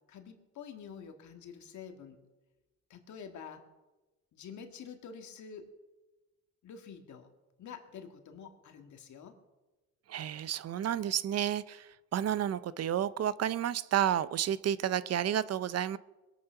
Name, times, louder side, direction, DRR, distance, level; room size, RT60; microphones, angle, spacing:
voice 1, 0.1-2.2 2.9-3.6 4.3-5.7 6.6-7.3 7.6-9.3, left 7 dB, 70° left, 2.0 m, -47 dB
voice 2, 10.1-16.0, right 10 dB, 55° right, 0.6 m, -31 dB
21.5 x 8.5 x 5.8 m
cardioid pair, 90°, 30 cm